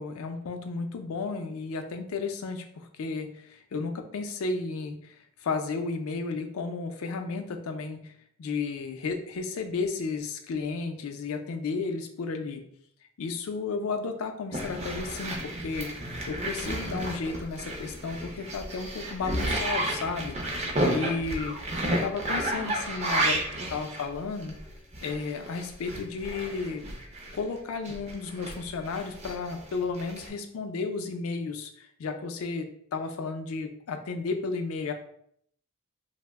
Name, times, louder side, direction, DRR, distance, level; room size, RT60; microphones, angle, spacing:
voice 1, 0.0-8.1 8.4-12.6 13.2-21.6 21.9-23.4 23.7-24.6 25.0-26.8 27.3-34.9, left 4 dB, 75° left, 6 dB, 0.4 m, -33 dB
sound 1, 14.5-27.4 27.8-30.3, right 1 dB, 30° right, 0.4 m, -32 dB
2.8 x 2.0 x 3.4 m, 0.67 s
head